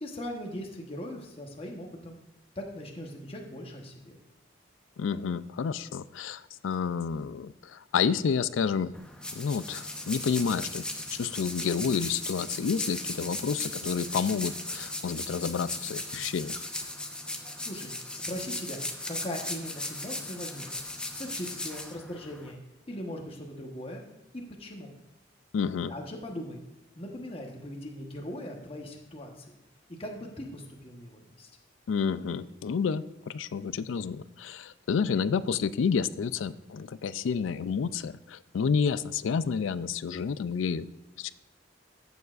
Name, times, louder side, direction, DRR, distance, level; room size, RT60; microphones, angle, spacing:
voice 1, 0.0-2.2 2.5-4.2 17.6-20.8 21.1-22.6 22.9-24.0 24.3-24.9 25.9-26.6 27.0-29.5 29.9-31.5, left 1 dB, 30° left, 1 dB, 1.1 m, -40 dB
voice 2, 5.0-9.0 9.3-10.8 11.1-16.9 25.5-25.9 31.9-40.9 41.2-41.3, left 6 dB, 90° left, 15 dB, 0.4 m, -30 dB
sound 1, 8.9-22.5, left 2 dB, 5° left, 0.7 m, -37 dB
14.5 x 7.1 x 2.5 m, 0.97 s
head